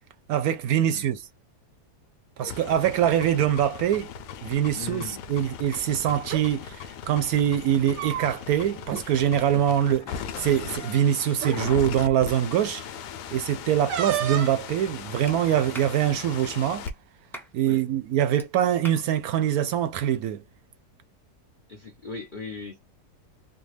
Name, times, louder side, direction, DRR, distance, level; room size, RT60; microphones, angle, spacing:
voice 1, 0.3-1.2 2.4-4.1 4.4-12.9 13.3-16.9 17.5-20.4, right 10 dB, 70° right, 1.0 m, -24 dB
sound 1, 2.4-16.9, left 8 dB, 80° left, 1.2 m, -38 dB
voice 2, 4.7-5.2 17.6-17.8 21.7-22.8, left 4 dB, 50° left, 0.6 m, -38 dB
sound 2, 6.2-6.4 7.7-8.6 8.9-9.0 9.4-9.7 10.6-10.7 11.3-11.6 13.9-14.6, right 10 dB, 85° right, 1.2 m, -31 dB
Clapping, 15.3-15.4 15.7-16.0 16.9-17.0 17.3-17.5 18.4-18.5 18.8-19.1, right 1 dB, ahead, 0.5 m, -41 dB
3.4 x 2.2 x 3.1 m
omnidirectional pair, 1.8 m